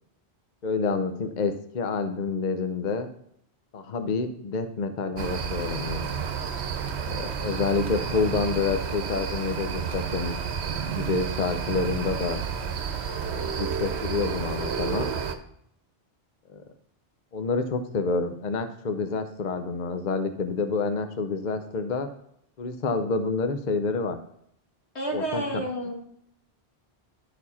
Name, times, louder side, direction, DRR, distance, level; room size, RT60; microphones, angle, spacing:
voice 1, 0.6-3.1 3.7-6.1 7.0-10.4 10.9-12.4 13.3-15.1 16.5-16.6 17.3-22.1 22.6-24.2 25.1-25.6, left 4 dB, 50° left, 8 dB, 0.7 m, -28 dB
sound 1, 5.2-15.4, right 6 dB, 80° right, 1.0 m, -31 dB
voice 2, 25.0-25.9, right 1 dB, 85° left, -1 dB, 2.2 m, -30 dB
12.0 x 4.7 x 4.1 m, 0.72 s
omnidirectional pair, 1.1 m